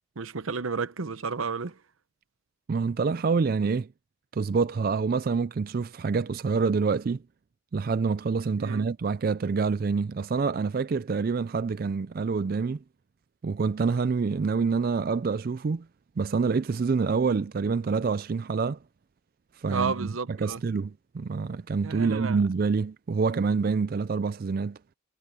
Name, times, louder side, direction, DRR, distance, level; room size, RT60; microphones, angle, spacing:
voice 1, 0.2-1.8 8.6-8.9 19.7-20.6 21.8-22.4, right 5 dB, 80° right, 0.9 m, -32 dB
voice 2, 2.7-3.9 4.3-7.2 7.7-12.8 13.4-15.9 16.2-18.8 19.6-24.8, right 5 dB, 45° right, 0.4 m, -27 dB
head